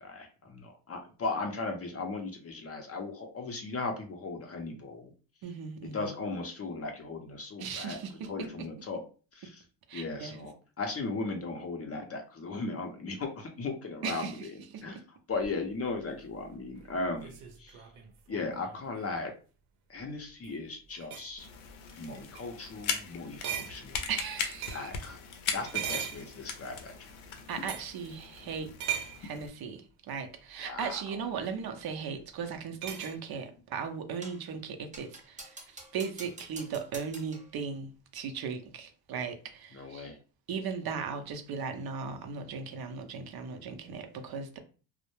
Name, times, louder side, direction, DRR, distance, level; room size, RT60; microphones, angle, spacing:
voice 1, 0.0-5.1 5.9-9.0 9.3-9.6 9.9-17.9 18.3-19.3 19.9-21.5 22.0-24.0 24.7-25.2 25.5-27.1 30.6-31.0 39.7-40.2, left 3 dB, 30° left, 0.5 m, -37 dB
voice 2, 5.4-6.1 7.6-8.3 9.9-10.4 14.0-14.4 14.7-14.8 24.1-24.9 27.5-40.1 40.5-44.6, right 6 dB, 50° right, 0.5 m, -37 dB
sound 1, 15.4-19.2 20.3-20.6 20.9-21.3 21.9-22.1 22.3-22.5 22.8-23.0 23.4-25.0 25.6-26.8 27.6-28.0 28.8-29.3 30.9-31.0 32.8-33.2, right 9 dB, 90° right, 0.7 m, -39 dB
sound 2, 21.4-29.5, left 6 dB, 75° left, 0.6 m, -39 dB
sound 3, 34.2-34.5 34.9-37.5, right 2 dB, 15° right, 0.7 m, -48 dB
2.1 x 2.0 x 3.0 m
cardioid pair, 90°, 48 cm